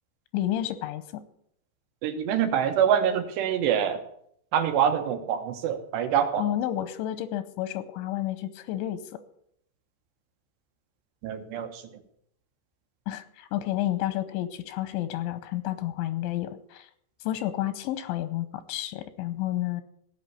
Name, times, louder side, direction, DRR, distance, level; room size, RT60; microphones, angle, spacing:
voice 1, 0.3-1.2 6.4-9.0 13.1-16.9 17.2-19.8, left 13 dB, 90° left, 13 dB, 3.2 m, -30 dB
voice 2, 2.0-4.0 4.5-6.4 11.2-11.8, right 8 dB, 75° right, 7 dB, 3.2 m, -25 dB
16.5 x 5.7 x 9.4 m, 0.69 s
omnidirectional pair, 5.3 m